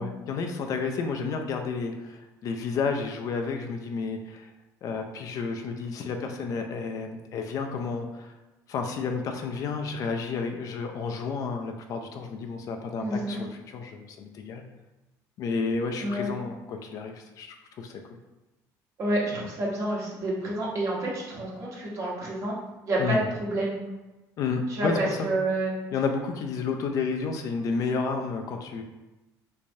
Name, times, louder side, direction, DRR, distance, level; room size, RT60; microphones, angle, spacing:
voice 1, 0.0-4.5 4.8-8.3 8.7-14.6 15.4-18.0 19.3-19.5 23.0-23.3 24.4-25.3 25.9-28.8, left 4 dB, 55° left, 4 dB, 0.4 m, -31 dB
voice 2, 13.0-13.4 16.0-16.3 19.0-22.6 22.8-23.8 24.7-25.7, right 1 dB, 45° right, -4 dB, 1.1 m, -29 dB
3.3 x 3.2 x 2.6 m, 1.1 s
cardioid pair, 130°, 7 cm